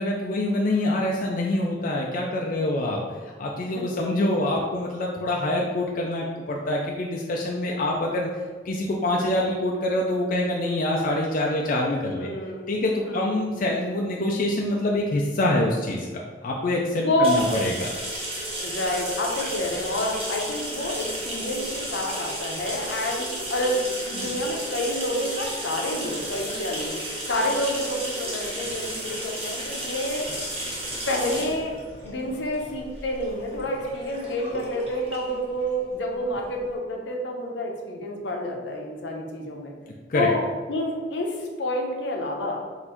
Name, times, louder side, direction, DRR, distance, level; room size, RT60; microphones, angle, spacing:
voice 1, 0.0-8.3 8.6-12.3 12.7-17.9 40.1-40.3, left 1 dB, 50° left, -1 dB, 0.4 m, -25 dB
voice 2, 7.6-8.0 12.2-12.7 13.0-13.4 17.0-17.4 18.6-27.0 27.3-30.2 31.1-31.8 32.0-39.7 40.1-40.4 40.7-42.6, left 1 dB, 75° left, 0 dB, 0.7 m, -28 dB
sound 1, 17.2-36.7, right 1 dB, 35° right, 1.0 m, -33 dB
4.0 x 2.6 x 4.3 m, 1.5 s
head